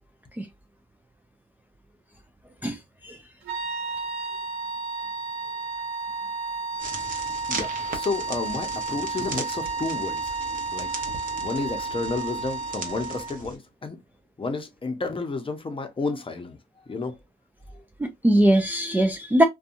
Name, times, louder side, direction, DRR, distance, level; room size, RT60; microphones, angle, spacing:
sound 1, 3.4-13.4, right 3 dB, 90° right, 0.7 m, -32 dB
sound 2, 6.8-13.6, right 4 dB, 45° right, 0.9 m, -38 dB
voice 1, 7.5-10.3 10.7-10.9 11.4-14.0 14.4-16.6 16.9-17.1, left 3 dB, 25° left, 0.7 m, -31 dB
voice 2, 18.0-19.4, right 1 dB, 10° right, 0.4 m, -21 dB
2.6 x 2.3 x 2.6 m
cardioid pair, 90°, 20 cm